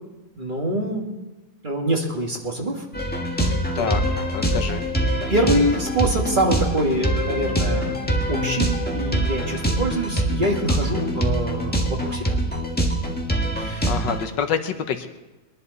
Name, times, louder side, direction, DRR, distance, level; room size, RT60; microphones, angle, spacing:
voice 1, 0.4-1.1 1.6-2.8 3.4-4.0 4.3-4.5 5.1-12.3 13.6-13.9, right 1 dB, 25° right, 0 dB, 1.9 m, -25 dB
sound 1, 2.9-14.3, right 1 dB, 5° left, 1.2 m, -24 dB
voice 2, 4.3-4.8 13.9-15.1, left 7 dB, 60° left, 7 dB, 1.5 m, -26 dB
22.5 x 11.5 x 4.1 m, 1.1 s
omnidirectional pair, 2.4 m